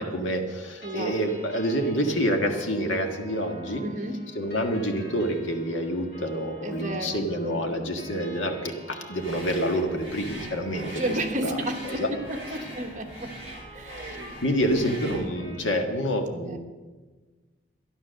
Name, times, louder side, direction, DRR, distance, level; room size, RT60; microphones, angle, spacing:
voice 1, 0.0-3.8 4.3-11.0 11.4-12.1 14.0-14.2 14.4-16.6, equal, 75° left, 4 dB, 1.6 m, -27 dB
sound 1, 0.8-15.6, right 1 dB, 55° left, 5.1 m, -46 dB
voice 2, 0.8-1.1 3.8-4.2 6.6-7.3 10.9-13.4 13.7-14.3 16.4-16.6, right 1 dB, 40° right, 4 dB, 1.2 m, -32 dB
sound 2, 9.2-15.3, right 1 dB, 30° left, 4.7 m, -42 dB
12.5 x 11.0 x 6.5 m, 1.3 s
head